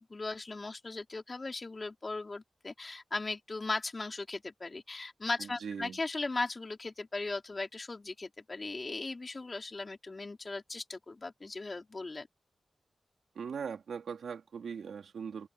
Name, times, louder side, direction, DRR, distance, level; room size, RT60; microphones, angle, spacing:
voice 1, 0.0-12.3, left 3 dB, 35° left, 4.3 m, -38 dB
voice 2, 5.4-6.0 13.4-15.5, right 6 dB, 90° right, 3.8 m, -40 dB
wide cardioid pair, 90°, 0 cm